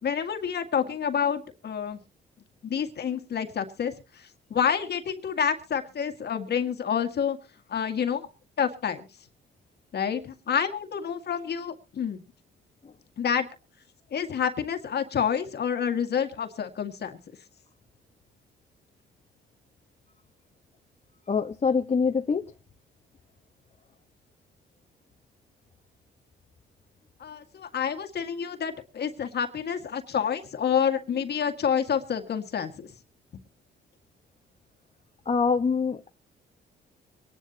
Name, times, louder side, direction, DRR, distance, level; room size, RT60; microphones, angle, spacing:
voice 1, 0.0-2.0 2.6-7.4 7.7-8.3 8.6-9.1 9.9-12.2 13.2-13.5 14.1-17.2 27.2-32.9, left 7 dB, 55° left, 6 dB, 2.0 m, -28 dB
voice 2, 21.3-22.5 35.2-36.1, left 5 dB, 35° left, 5 dB, 1.3 m, -25 dB
25.0 x 10.5 x 2.9 m, 0.33 s
cardioid pair, 90°, 20 cm